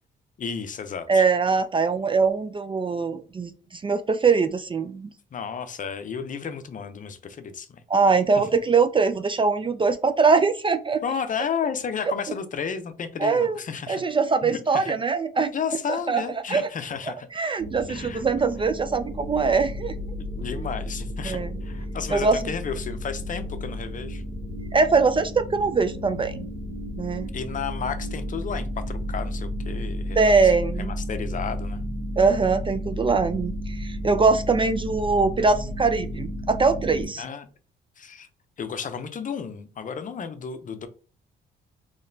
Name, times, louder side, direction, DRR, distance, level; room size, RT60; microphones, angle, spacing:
voice 1, 0.4-1.2 5.3-7.8 11.0-14.0 14.4-14.9 15.5-17.3 17.9-18.2 20.3-24.2 27.3-30.5 30.8-31.9 37.2-37.5 38.0-38.3 38.6-40.9, left 6 dB, 40° left, 10 dB, 0.6 m, -32 dB
voice 2, 1.1-5.1 7.9-11.0 13.2-13.6 13.9-15.5 15.9-16.7 17.3-19.9 21.2-21.6 22.1-22.5 24.7-26.5 27.0-27.3 30.2-30.9 32.2-37.2, right 4 dB, 25° right, 10 dB, 0.3 m, -22 dB
sound 1, 17.6-37.0, equal, 55° right, 1.8 m, -33 dB
3.9 x 3.0 x 2.6 m, 0.37 s
cardioid pair, 90°, 20 cm